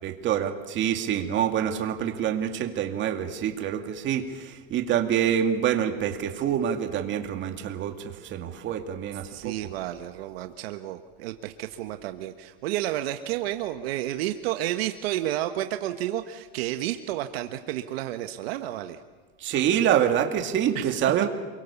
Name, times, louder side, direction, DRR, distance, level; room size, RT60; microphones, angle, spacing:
voice 1, 0.0-9.5 19.4-21.3, right 9 dB, 40° right, 5 dB, 2.5 m, -26 dB
voice 2, 9.3-19.0 20.7-20.9, right 13 dB, 75° right, 8 dB, 1.3 m, -31 dB
29.0 x 23.0 x 7.1 m, 1.4 s
supercardioid pair, 135°, 30 cm